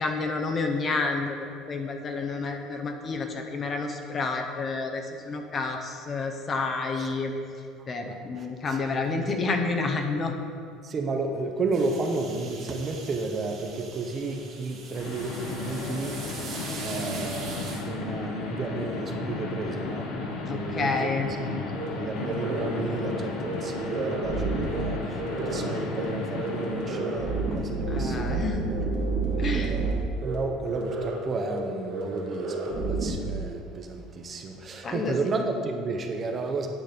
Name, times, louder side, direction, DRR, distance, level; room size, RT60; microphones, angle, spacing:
voice 1, 0.0-1.4 1.7-7.3 7.9-10.3 20.5-21.3 27.9-28.6 29.4-29.8 34.8-35.1, left 3 dB, 30° left, 4 dB, 0.7 m, -29 dB
voice 2, 8.0-8.8 9.0-9.3 10.8-20.1 20.4-28.7 29.3-36.7, right 3 dB, 30° right, 4 dB, 0.7 m, -32 dB
sound 1, 11.7-17.8, right 4 dB, 50° right, 1.8 m, -42 dB
sound 2, 14.3-14.4 14.9-28.0, left 3 dB, 70° left, 1.0 m, -34 dB
sound 3, 21.7-21.9 22.2-22.7 23.0-23.1 23.4-24.8 25.1-25.6 25.9-26.0 26.3-29.9 30.2-30.4 30.7-31.2 31.4-31.6 31.9-33.1, right 3 dB, 75° right, 1.4 m, -30 dB
8.9 x 3.9 x 5.1 m, 2.3 s
cardioid pair, 125°, 0 cm